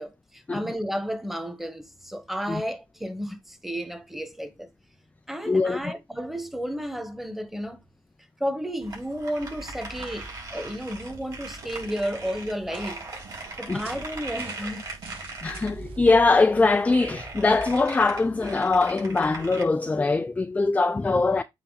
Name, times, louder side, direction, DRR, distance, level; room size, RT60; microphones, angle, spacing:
voice 1, 0.0-4.7 5.3-7.8 8.4-13.0 13.6-14.9, equal, ahead, 1.3 m, -32 dB
voice 2, 5.5-5.8 13.7-13.8 15.4-21.4, left 3 dB, 15° left, 0.3 m, -22 dB
sound 1, 8.8-19.6, right 2 dB, 40° right, 4.3 m, -39 dB
sound 2, 9.6-16.0, right 5 dB, 75° right, 1.3 m, -48 dB
8.7 x 2.9 x 4.0 m
cardioid pair, 85°, 10 cm